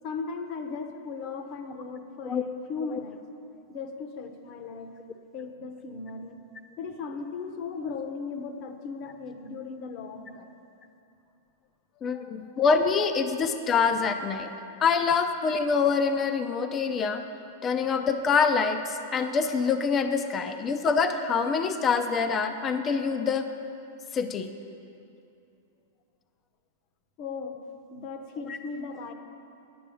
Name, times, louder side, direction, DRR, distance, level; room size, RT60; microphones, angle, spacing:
voice 1, 0.0-3.2 3.7-4.9 5.3-6.4 6.8-10.5 12.1-12.6 27.2-27.6 27.9-29.1, left 4 dB, 35° left, 7 dB, 0.9 m, -37 dB
voice 2, 12.0-14.5 14.8-17.2 17.6-23.5 24.1-24.5, left 5 dB, 20° left, 8 dB, 0.5 m, -25 dB
9.4 x 9.4 x 7.0 m, 2.7 s
supercardioid pair, 155°, 0 cm